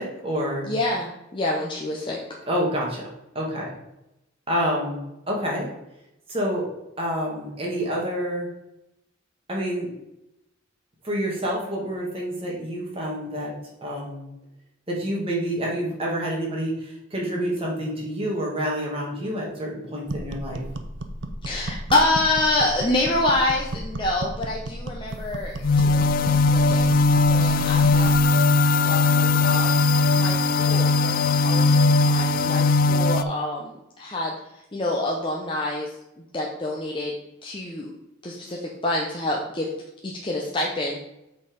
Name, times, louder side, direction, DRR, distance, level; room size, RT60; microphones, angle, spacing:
voice 1, 0.0-0.7 2.5-3.0 3.4-3.7 4.5-5.0 5.3-5.7 6.3-6.7 7.0-8.5 9.5-9.9 11.0-13.5 13.8-14.3 14.9-20.6, equal, 30° right, -3 dB, 1.8 m, -28 dB
voice 2, 0.7-2.2 21.4-26.8 27.3-28.2 28.8-36.0 36.3-37.2 37.4-37.9 38.2-39.7 40.0-41.0, left 2 dB, 25° left, -2 dB, 0.7 m, -27 dB
sound 1, 20.1-28.3, right 1 dB, 65° right, 0.7 m, -33 dB
sound 2, 25.6-33.2, left 3 dB, 45° left, 0.3 m, -19 dB
7.6 x 4.1 x 5.2 m, 0.89 s
head